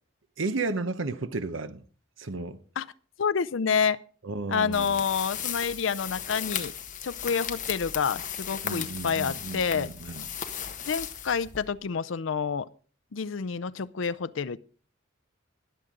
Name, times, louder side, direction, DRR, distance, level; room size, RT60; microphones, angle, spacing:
voice 1, 0.4-1.8 2.2-2.6 4.2-5.0 8.6-10.3, right 3 dB, 70° right, 0.9 m, -33 dB
voice 2, 3.2-4.0 4.5-6.7 7.0-9.9 10.9-12.7 13.1-14.6, left 6 dB, 70° left, 0.5 m, -28 dB
sound 1, 4.7-11.9, left 9 dB, 40° left, 1.2 m, -36 dB
20.5 x 7.9 x 3.8 m
head